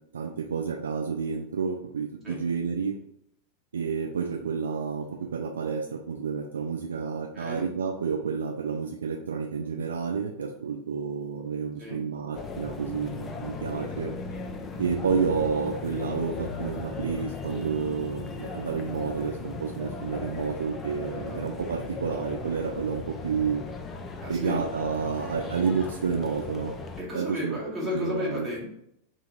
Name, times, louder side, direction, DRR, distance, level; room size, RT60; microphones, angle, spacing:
voice 1, 0.1-3.0 3.7-14.1 14.8-23.6 24.3-26.7 27.1-27.6 27.9-28.5, right 6 dB, 70° right, 1 dB, 0.3 m, -30 dB
voice 2, 7.3-7.7 11.8-12.0 21.1-21.4 24.2-24.6 27.0-28.7, left 2 dB, 20° right, -5 dB, 1.1 m, -33 dB
sound 1, 12.3-27.0, left 4 dB, 20° left, 0.5 m, -37 dB
2.8 x 2.5 x 3.7 m, 0.74 s
figure-of-eight pair, 90°, 0 cm